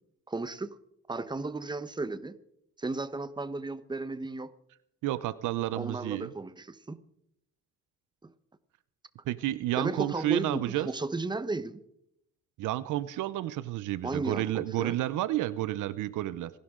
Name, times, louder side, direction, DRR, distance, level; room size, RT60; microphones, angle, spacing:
voice 1, 0.3-0.8 1.1-2.4 2.8-4.5 5.7-7.0 8.2-8.3 9.8-11.8 14.0-15.0, right 3 dB, 15° right, 1.0 m, -34 dB
voice 2, 5.0-6.3 9.3-10.9 12.6-16.5, right 15 dB, 85° right, 0.7 m, -31 dB
26.5 x 12.0 x 3.8 m
cardioid pair, 90°, 30 cm